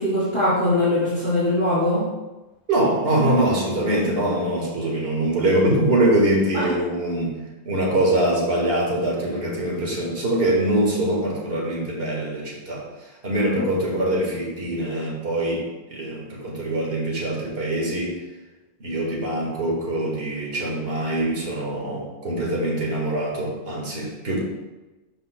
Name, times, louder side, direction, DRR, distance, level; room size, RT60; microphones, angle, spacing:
voice 1, 0.0-2.1 6.5-6.7 13.6-13.7, left 1 dB, 25° left, -13 dB, 2.8 m, -22 dB
voice 2, 2.7-7.4 7.7-12.9 13.2-18.2 18.8-24.4, right 1 dB, 50° right, -3 dB, 2.0 m, -23 dB
12.5 x 5.4 x 2.3 m, 1.1 s
omnidirectional pair, 1.3 m